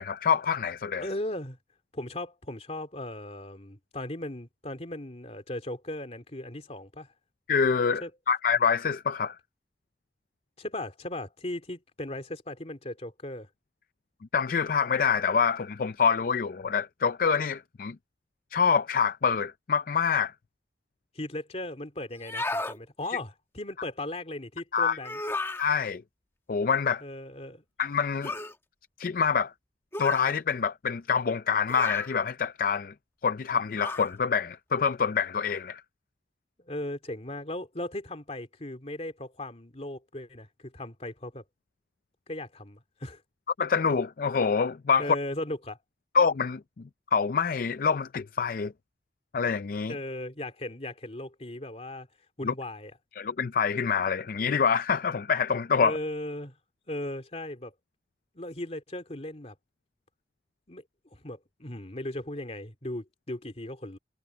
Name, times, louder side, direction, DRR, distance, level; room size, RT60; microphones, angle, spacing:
voice 1, 0.0-1.1 7.5-9.4 14.3-18.0 18.5-20.3 23.1-23.2 24.7-25.0 25.6-26.0 26.5-27.0 27.8-28.4 29.0-29.5 30.0-32.9 33.2-35.8 43.6-45.1 46.1-48.7 49.3-50.0 52.4-52.5 53.2-56.0, left 6 dB, 50° left, 0.4 m, -26 dB
voice 2, 1.0-1.6 1.9-7.1 8.0-8.1 10.6-13.5 21.1-25.2 27.0-27.6 36.6-41.4 42.3-43.2 45.0-45.8 49.9-52.1 52.4-52.9 55.8-56.6 56.9-57.7 58.3-59.6 60.7-60.8 61.1-64.0, left 1 dB, 35° left, 2.9 m, -37 dB
sound 1, 22.1-22.8 25.0-25.7 28.2-28.5 29.9-30.3 31.7-32.1 33.8-34.1, left 2 dB, 15° left, 1.4 m, -33 dB
head